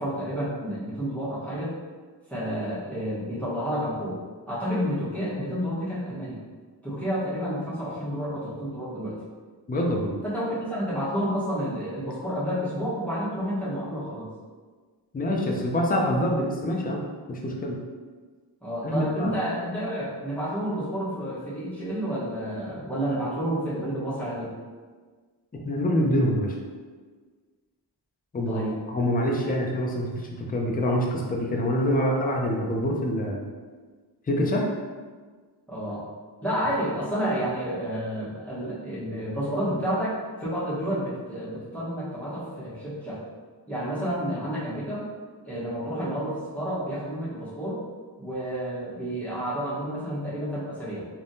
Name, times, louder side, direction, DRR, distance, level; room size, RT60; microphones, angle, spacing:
voice 1, 0.0-1.7 2.3-4.2 4.5-6.4 6.8-9.2 10.2-14.3 18.6-24.5 28.5-28.8 35.7-36.0 36.4-43.2 43.7-45.1 45.4-47.8 48.2-51.1, equal, 5° left, -10 dB, 1.1 m, -30 dB
voice 2, 9.7-10.1 15.1-17.0 17.3-17.8 18.8-19.3 25.7-26.5 28.3-33.4 34.3-34.7, equal, 20° left, 0 dB, 0.5 m, -25 dB
3.3 x 2.2 x 2.7 m, 1.5 s
cardioid pair, 65°, 44 cm